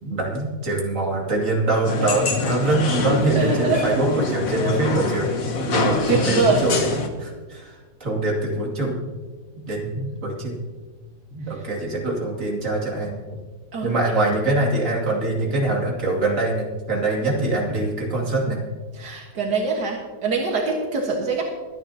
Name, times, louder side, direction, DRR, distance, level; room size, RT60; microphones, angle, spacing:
voice 1, 0.0-5.3 5.7-7.7 8.0-9.1 9.7-10.6 11.3-13.2 13.8-18.6, right 2 dB, 50° right, -2 dB, 2.9 m, -24 dB
sound 1, 1.8-7.1, left 4 dB, 60° left, 1.6 m, -25 dB
voice 2, 3.4-4.0 6.1-6.7 13.7-13.9 18.9-21.4, right 4 dB, 80° right, -1 dB, 2.1 m, -23 dB
23.5 x 10.0 x 2.9 m, 1.4 s
omnidirectional pair, 1.7 m